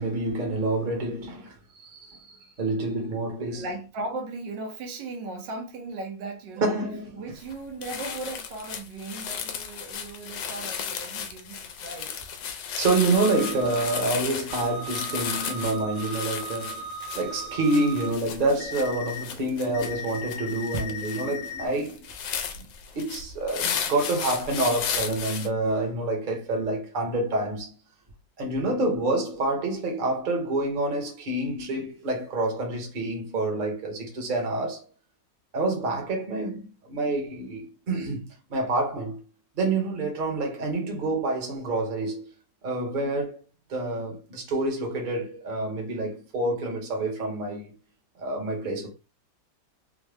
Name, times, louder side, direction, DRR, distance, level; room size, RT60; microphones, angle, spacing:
voice 1, 0.0-3.7 6.6-7.2 12.7-22.1 22.6-22.7 22.9-27.7 28.4-34.9 35.5-38.2 38.5-39.2 39.6-42.3 42.6-43.4 43.7-47.7 48.2-48.9, right 2 dB, 35° right, 0.9 m, -27 dB
voice 2, 3.5-6.8 7.2-12.2, right 2 dB, 85° right, 1.4 m, -37 dB
sound 1, 7.4-7.5 7.8-25.5, left 7 dB, 90° left, 1.3 m, -34 dB
sound 2, 13.2-14.0 14.5-18.1 18.6-19.2 19.7-21.7, equal, 70° left, 1.1 m, -37 dB
3.7 x 2.0 x 3.3 m
omnidirectional pair, 1.9 m